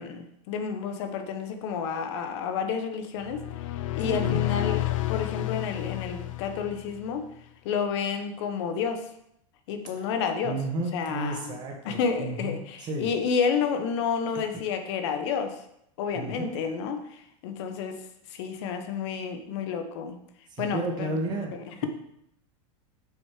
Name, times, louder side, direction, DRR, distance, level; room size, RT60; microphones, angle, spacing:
voice 1, 0.0-7.3 7.6-9.1 9.7-10.6 10.9-11.6 11.8-15.6 16.0-20.2 20.6-21.2 21.5-21.9, left 6 dB, 60° left, 7 dB, 1.1 m, -30 dB
sound 1, 3.2-7.1, left 16 dB, 85° left, 0.5 m, -30 dB
voice 2, 4.0-4.4 10.4-13.1 16.1-16.5 20.5-21.5, right 2 dB, 25° right, 1 dB, 1.8 m, -32 dB
8.0 x 5.8 x 4.9 m, 0.76 s
supercardioid pair, 155°, 16 cm